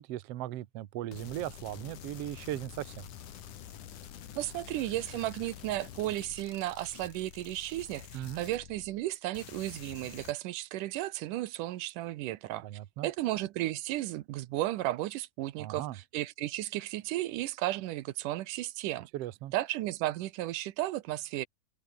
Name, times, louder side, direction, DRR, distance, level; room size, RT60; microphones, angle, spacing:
voice 1, 0.0-3.1 8.1-8.4 12.6-13.1 15.6-16.0 19.1-19.5, right 14 dB, 65° right, 1.7 m, -38 dB
sound 1, 1.1-9.1 9.3-10.3, left 10 dB, 70° left, 3.4 m, -48 dB
voice 2, 4.4-12.7 13.0-19.1 19.5-21.5, right 15 dB, 80° right, 2.4 m, -34 dB
omnidirectional pair, 3.7 m